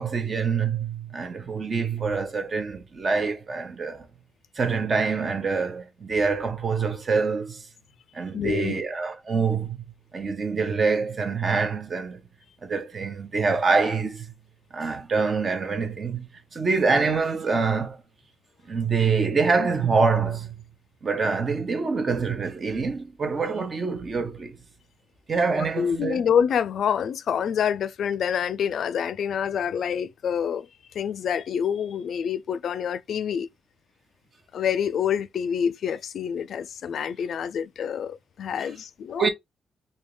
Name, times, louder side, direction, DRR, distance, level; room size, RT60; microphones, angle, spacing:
voice 1, 0.0-4.1 4.6-7.6 8.1-9.8 10.1-12.2 12.6-14.3 14.7-16.2 16.5-18.0 18.7-20.5 21.0-24.6 25.3-26.2 39.2-39.3, right 4 dB, 40° right, 1.0 m, -25 dB
voice 2, 8.3-8.7 25.7-30.7 30.9-33.5 34.5-39.3, left 8 dB, 70° left, 0.4 m, -27 dB
3.7 x 2.7 x 3.2 m
cardioid pair, 100°, 0 cm